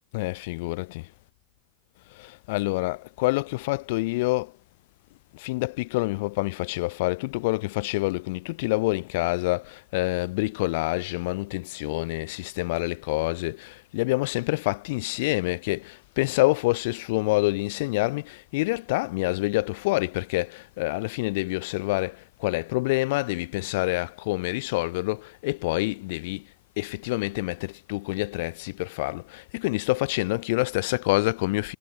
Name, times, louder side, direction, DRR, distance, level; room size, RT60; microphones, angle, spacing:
voice 1, 0.1-1.1 2.2-4.5 5.3-26.4 26.8-31.8, left 22 dB, 60° left, 0.6 m, -27 dB
supercardioid pair, 140°, 0 cm